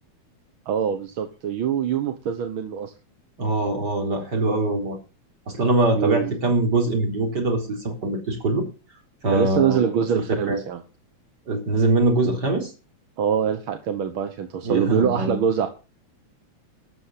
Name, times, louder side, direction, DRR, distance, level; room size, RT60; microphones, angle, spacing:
voice 1, 0.6-2.9 5.9-6.3 9.3-10.8 13.2-15.7, right 8 dB, 55° right, 8 dB, 1.7 m, -24 dB
voice 2, 3.4-5.0 5.5-8.7 9.2-10.1 10.5-10.6 11.5-12.7 14.6-15.4, right 2 dB, 35° right, 3 dB, 4.3 m, -23 dB
12.5 x 8.6 x 7.5 m, 0.33 s
omnidirectional pair, 3.4 m